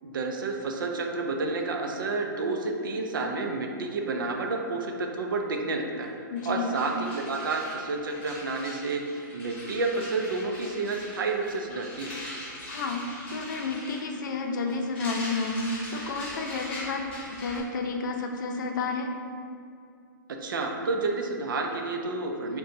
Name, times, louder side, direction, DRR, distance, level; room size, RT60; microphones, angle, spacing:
voice 1, 0.0-6.1 6.5-12.1 20.4-22.6, right 3 dB, 75° right, 2 dB, 0.5 m, -30 dB
sound 1, 6.0-6.1 6.3-17.6, left 1 dB, 10° left, 0.9 m, -41 dB
voice 2, 6.3-6.8 12.7-13.0 13.3-17.1 17.3-19.1, left 3 dB, 65° left, 3 dB, 0.5 m, -31 dB
6.7 x 2.3 x 2.7 m, 2.4 s
hypercardioid pair, 155°, 11 cm